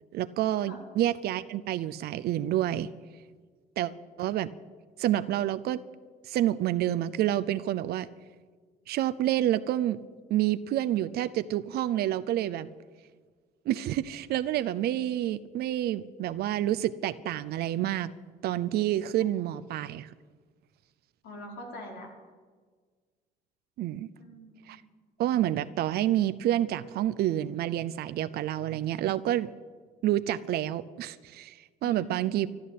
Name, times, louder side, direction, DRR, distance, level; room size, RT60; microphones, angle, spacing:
voice 1, 0.1-2.9 3.8-3.9 4.2-4.5 5.0-5.8 6.2-8.1 8.9-10.0 10.3-12.7 13.7-18.1 18.4-20.1 23.8-24.1 24.7-24.8 25.2-29.5 30.0-32.5, right 13 dB, 70° right, 14 dB, 0.6 m, -28 dB
voice 2, 21.2-22.1 24.2-24.8 31.8-32.2, left 1 dB, 80° left, 0 dB, 4.9 m, -43 dB
13.5 x 12.0 x 8.5 m, 1.5 s
cardioid pair, 110°, 17 cm